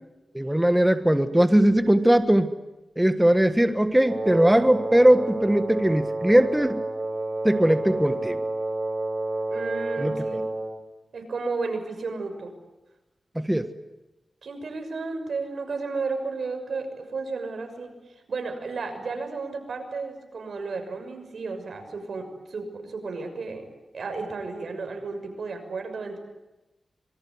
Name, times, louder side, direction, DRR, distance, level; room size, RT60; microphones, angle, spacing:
voice 1, 0.3-2.5 3.0-6.8 7.4-8.4 10.0-10.1 13.3-13.7, right 1 dB, 10° right, 9 dB, 1.5 m, -20 dB
Wind instrument woodwind instrument, 4.0-10.8, right 2 dB, 45° right, 2.7 m, -30 dB
voice 2, 9.5-10.4 11.1-12.5 14.4-23.6 23.9-26.2, right 4 dB, 80° right, 5 dB, 6.4 m, -33 dB
26.0 x 23.5 x 9.6 m, 1.0 s
wide cardioid pair, 80°, 0 cm